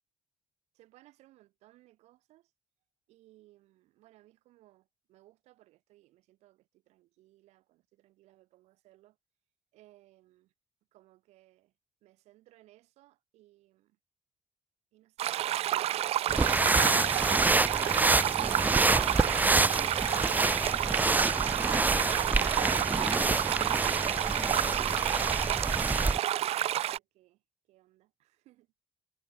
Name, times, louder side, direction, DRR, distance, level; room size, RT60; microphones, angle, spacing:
voice 1, 0.7-2.5 3.1-9.2 9.7-10.5 10.9-11.7 12.0-14.0 14.9-16.9 26.4-28.7, right 17 dB, 90° right, 3.4 m, -62 dB
sound 1, 15.2-27.0, right 12 dB, 65° right, 0.4 m, -30 dB
sound 2, 16.3-26.2, right 2 dB, 15° right, 0.5 m, -27 dB
supercardioid pair, 65°, 11 cm